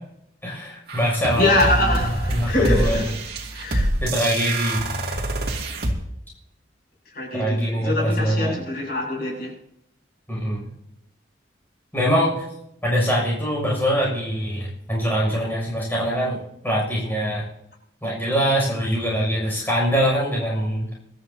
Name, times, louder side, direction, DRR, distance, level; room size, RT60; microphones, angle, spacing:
voice 1, 0.4-2.0 2.3-3.0 4.0-4.8 7.3-8.6 10.3-10.6 11.9-12.4 12.8-17.4 18.0-20.9, equal, 10° left, 6.8 m, -23 dB
sound 1, 0.9-5.9, right 1 dB, 60° right, 2.5 m, -25 dB
voice 2, 1.3-3.2 3.5-3.9 5.1-5.2 7.1-9.5, left 2 dB, 55° left, 7.6 m, -24 dB
25.0 x 13.0 x 2.9 m
head